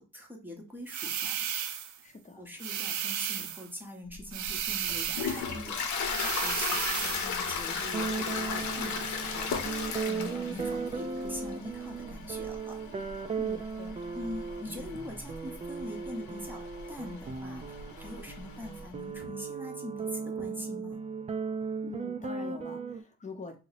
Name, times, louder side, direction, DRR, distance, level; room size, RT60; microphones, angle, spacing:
voice 1, 0.0-1.3 2.4-5.9 6.4-9.5 10.0-13.1 14.1-21.0, left 1 dB, 5° right, 0 dB, 0.8 m, -43 dB
sound 1, 0.9-2.0 2.6-3.7 4.3-5.5 6.1-7.3, right 9 dB, 75° right, 0.5 m, -34 dB
voice 2, 2.0-2.4 13.4-14.0 21.8-23.6, left 3 dB, 25° left, 3 dB, 0.7 m, -44 dB
Toilet flush, 4.1-18.9, left 5 dB, 70° left, 0.7 m, -37 dB
sound 2, 7.9-23.0, right 5 dB, 25° right, 0.4 m, -37 dB
2.6 x 2.1 x 4.0 m, 0.31 s
cardioid pair, 90°, 30 cm